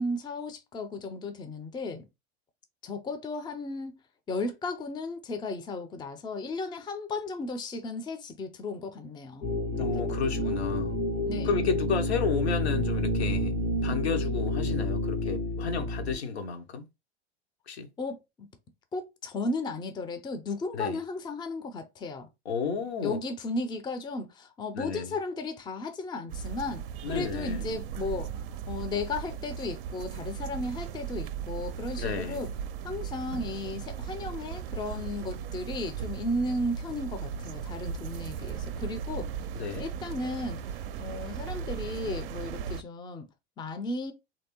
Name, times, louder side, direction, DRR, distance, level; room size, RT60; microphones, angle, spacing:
voice 1, 0.0-2.1 2.8-4.0 4.3-9.5 9.8-10.6 11.2-11.5 18.0-18.5 18.9-22.3 23.0-28.3 28.7-32.5 32.8-39.3 39.8-43.3 43.6-44.1, left 2 dB, 15° left, 0.5 m, -35 dB
sound 1, 9.4-16.2, left 1 dB, 90° left, 1.3 m, -29 dB
voice 2, 9.8-10.9 11.4-13.5 13.8-16.9 17.7-17.9 20.7-21.0 22.5-23.2 24.8-25.1 27.0-27.6 32.0-32.5 39.6-39.9, left 5 dB, 75° left, 0.8 m, -32 dB
sound 2, 26.3-42.8, right 8 dB, 60° right, 0.5 m, -37 dB
3.2 x 2.7 x 2.9 m
figure-of-eight pair, 80°, 33 cm